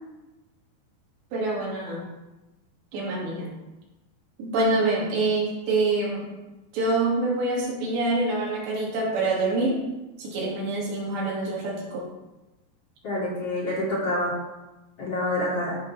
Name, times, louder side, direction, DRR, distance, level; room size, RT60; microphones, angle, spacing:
voice 1, 1.3-2.1 2.9-3.5 4.4-6.3 6.7-9.8 10.2-12.1, right 2 dB, 85° right, -4 dB, 5.1 m, -26 dB
voice 2, 13.0-14.3 15.0-15.8, left 1 dB, 40° left, -8 dB, 3.3 m, -27 dB
14.0 x 5.1 x 5.9 m, 1.1 s
omnidirectional pair, 4.9 m